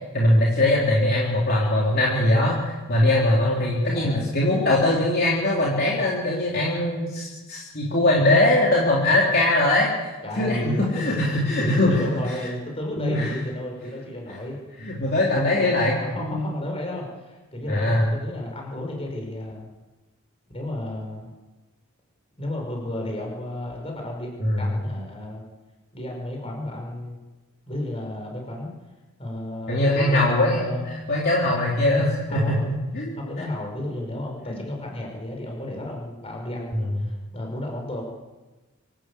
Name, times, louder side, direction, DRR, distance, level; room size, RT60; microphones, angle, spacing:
voice 1, 0.1-9.9 10.4-12.0 13.0-13.3 14.8-16.5 17.7-18.1 24.4-24.7 29.7-32.6 32.9-33.1 34.5-34.6 36.7-37.0, left 1 dB, 45° left, -4 dB, 3.6 m, -21 dB
voice 2, 3.9-4.3 10.2-14.6 15.4-19.7 20.5-21.3 22.4-25.4 25.9-27.2 27.7-28.7 29.2-30.9 32.3-32.7 33.2-38.0, left 1 dB, 25° left, 1 dB, 5.7 m, -33 dB
25.5 x 12.5 x 8.4 m, 1.2 s
head